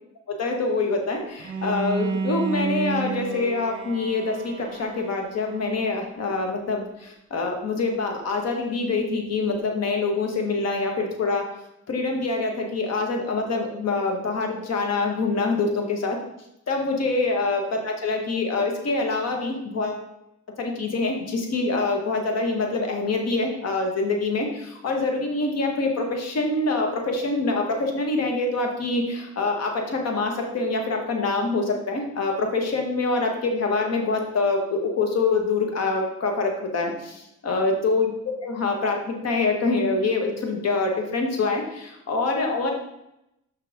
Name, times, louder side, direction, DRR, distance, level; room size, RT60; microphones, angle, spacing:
voice 1, 0.4-11.4 11.9-16.2 16.7-20.0 20.6-38.1 38.4-42.7, left 3 dB, 55° left, 3 dB, 1.6 m, -25 dB
Bowed string instrument, 1.4-6.4, right 4 dB, 40° right, 1.2 m, -31 dB
6.1 x 5.6 x 3.6 m, 0.85 s
cardioid pair, 90°, 30 cm